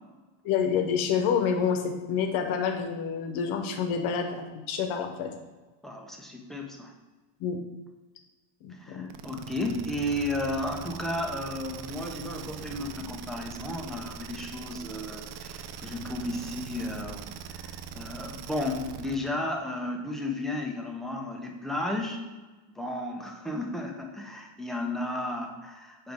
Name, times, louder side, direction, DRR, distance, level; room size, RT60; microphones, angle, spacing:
voice 1, 0.4-5.3 7.4-7.6 8.6-9.1, left 7 dB, 70° left, 5 dB, 0.9 m, -28 dB
voice 2, 5.8-6.9 8.7-22.2 22.7-26.1, left 1 dB, ahead, 1 dB, 0.4 m, -33 dB
sound 1, 9.1-19.3, right 6 dB, 55° right, 0.5 m, -41 dB
9.0 x 3.1 x 3.5 m, 1.2 s
cardioid pair, 155°, 50 cm